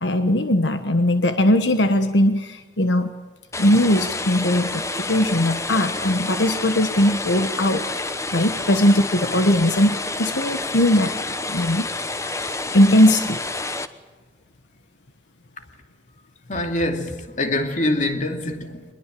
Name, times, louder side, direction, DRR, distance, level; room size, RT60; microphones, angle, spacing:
voice 1, 0.0-3.1 3.6-7.8 8.3-11.1 11.5-11.9 12.7-13.4, left 1 dB, 85° left, 1.4 m, -19 dB
sound 1, 3.5-13.9, left 2 dB, 15° left, 1.1 m, -29 dB
voice 2, 16.5-18.9, left 1 dB, 45° left, 2.6 m, -24 dB
24.5 x 21.5 x 7.7 m
head